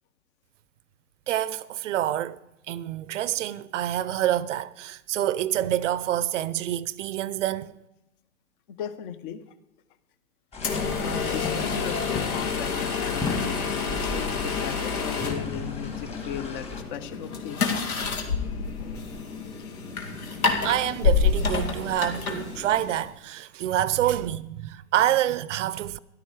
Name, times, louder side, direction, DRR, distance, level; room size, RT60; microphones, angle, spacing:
voice 1, 1.3-2.4 2.7-7.7 20.6-26.0, right 12 dB, 60° right, 0.6 m, -27 dB
voice 2, 8.7-9.4 11.0-17.8 19.6-19.8, left 9 dB, 35° left, 0.9 m, -37 dB
sound 1, 10.5-16.8, left 3 dB, 15° left, 1.4 m, -36 dB
sound 2, 10.6-23.1, left 5 dB, 85° left, 2.4 m, -28 dB
13.5 x 12.0 x 4.8 m
hypercardioid pair, 140°, 43 cm